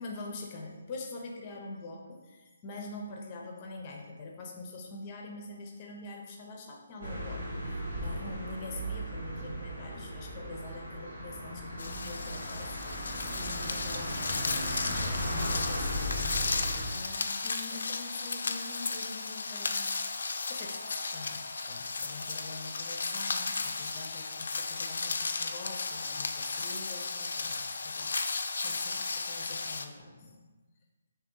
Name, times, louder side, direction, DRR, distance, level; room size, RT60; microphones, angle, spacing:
voice 1, 0.0-16.3 16.9-20.0 20.5-30.4, left 3 dB, 25° left, 0 dB, 0.5 m, -45 dB
sound 1, 7.0-16.9, equal, 85° right, 1.3 m, -36 dB
sound 2, 11.8-29.8, left 4 dB, 70° left, 0.3 m, -35 dB
3.5 x 2.7 x 3.7 m, 1.2 s
hypercardioid pair, 165°, 0 cm